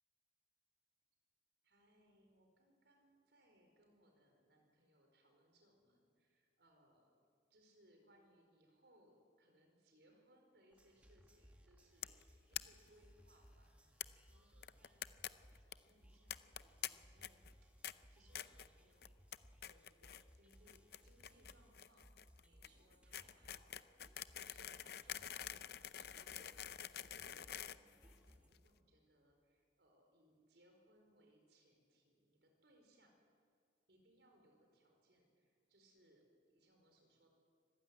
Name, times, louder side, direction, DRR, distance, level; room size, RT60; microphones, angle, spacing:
voice 1, 1.6-7.2 7.5-19.1 19.6-33.2 33.9-37.3, right 1 dB, 75° right, 3 dB, 4.8 m, -72 dB
sound 1, 10.7-28.5, equal, 10° right, 1.9 m, -65 dB
sound 2, 12.0-12.2 12.5-12.6 12.9-13.0 13.2-13.3 14.0-14.1 14.6-15.3 15.5-15.7 16.3-16.9 17.2-17.5 17.8-17.9 18.3-18.7 19.0-19.4 19.6-20.2 20.5-28.6, left 11 dB, 60° left, 0.6 m, -47 dB
25.0 x 15.0 x 9.6 m, 2.2 s
head